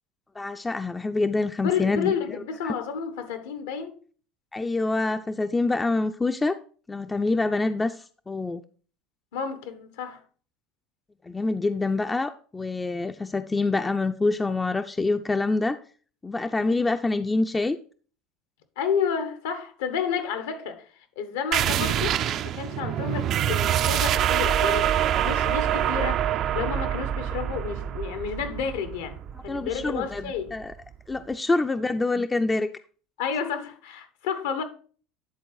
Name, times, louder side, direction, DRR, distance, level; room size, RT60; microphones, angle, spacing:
voice 1, 0.4-2.7 4.5-6.6 6.9-8.6 11.3-15.8 16.2-17.8 29.5-30.7 31.1-32.7, left 3 dB, 15° left, 0.4 m, -26 dB
voice 2, 1.6-4.0 9.3-10.2 18.8-20.9 21.2-24.9 25.2-26.2 26.5-30.5 33.2-34.6, left 7 dB, 85° left, 1.1 m, -30 dB
sound 1, 21.5-30.7, right 11 dB, 50° right, 0.4 m, -26 dB
10.0 x 4.0 x 4.7 m
supercardioid pair, 100°, 0 cm